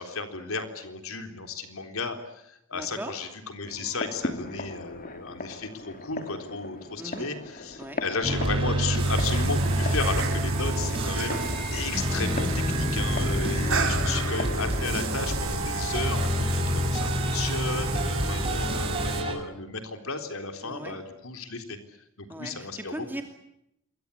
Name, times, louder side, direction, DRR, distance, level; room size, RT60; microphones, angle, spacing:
voice 1, 0.0-2.2 2.4-11.4 11.7-21.8 22.2-23.0, left 4 dB, 80° left, 6 dB, 3.8 m, -34 dB
voice 2, 2.7-3.1 7.0-7.3 7.8-8.0 13.6-13.9 18.2-18.5 20.6-21.0 22.3-23.2, right 1 dB, 10° right, 4 dB, 2.6 m, -38 dB
sound 1, 3.6-15.5, left 2 dB, 40° left, 2.9 m, -39 dB
sound 2, 8.2-19.3, equal, 25° right, 6.3 m, -28 dB
sound 3, 9.0-19.2, right 3 dB, 70° right, 5.5 m, -32 dB
27.5 x 23.5 x 8.4 m, 0.81 s
head